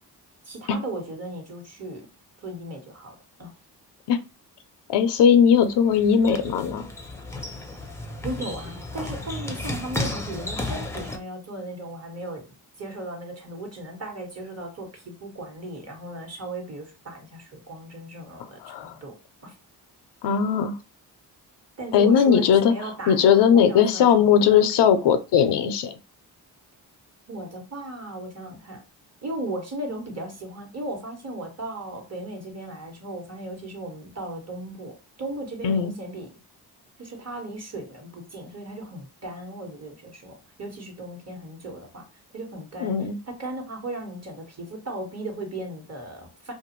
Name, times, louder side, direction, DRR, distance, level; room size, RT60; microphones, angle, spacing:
voice 1, 0.4-2.1 2.4-3.5 8.2-12.5 12.8-19.2 19.4-19.6 21.8-24.6 27.3-28.8 29.2-36.4 37.0-42.1 42.3-42.9 43.2-46.5, right 1 dB, 40° right, 1.1 m, -36 dB
voice 2, 4.9-6.9 18.6-18.9 20.2-20.7 21.9-22.7 23.1-26.0 35.6-35.9 42.8-43.2, left 7 dB, 80° left, 0.5 m, -19 dB
sound 1, 5.5-11.2, left 2 dB, 5° left, 0.5 m, -33 dB
2.5 x 2.3 x 2.9 m
cardioid pair, 70°, 41 cm